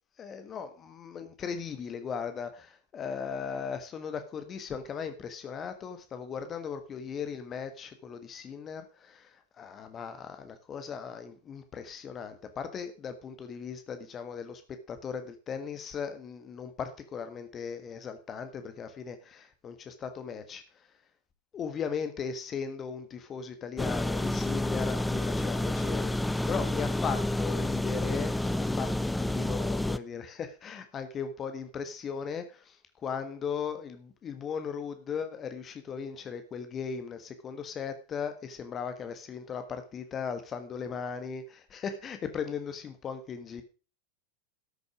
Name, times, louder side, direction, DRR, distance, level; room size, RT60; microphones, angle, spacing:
voice 1, 0.2-9.3 9.6-14.6 14.9-20.6 21.5-32.8 33.0-43.6, left 6 dB, 25° left, 8 dB, 1.4 m, -37 dB
sound 1, 23.8-30.0, left 1 dB, 5° left, 0.5 m, -29 dB
13.0 x 7.0 x 4.9 m, 0.34 s
figure-of-eight pair, 90°, 0 cm